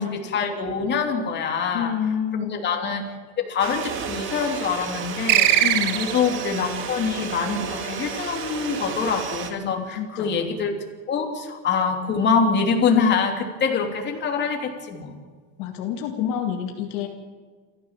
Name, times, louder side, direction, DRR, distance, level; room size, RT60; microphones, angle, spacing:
voice 1, 0.0-1.9 2.4-3.0 3.4-10.7 11.1-15.1, left 5 dB, 30° left, 3 dB, 3.0 m, -25 dB
voice 2, 1.7-2.6 5.6-6.0 9.6-10.6 15.6-17.1, left 9 dB, 60° left, 3 dB, 2.1 m, -28 dB
sound 1, 3.6-9.5, right 6 dB, 30° right, 2.2 m, -32 dB
sound 2, 5.3-6.5, right 13 dB, 70° right, 1.6 m, -20 dB
28.5 x 14.0 x 7.4 m, 1.5 s
supercardioid pair, 155°, 37 cm